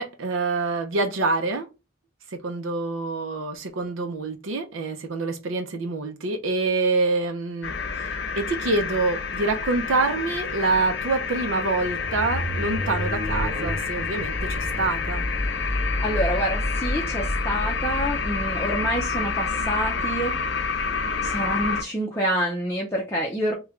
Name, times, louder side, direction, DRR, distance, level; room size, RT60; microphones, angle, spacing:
voice 1, 0.0-1.7 2.3-15.3, right 3 dB, 85° right, 0.5 m, -26 dB
sound 1, 7.6-21.8, left 5 dB, 60° left, 0.5 m, -29 dB
sound 2, 11.4-19.6, left 1 dB, 40° right, 1.5 m, -30 dB
voice 2, 15.5-20.3 21.2-23.5, equal, 15° left, 0.6 m, -27 dB
3.2 x 2.2 x 3.6 m
head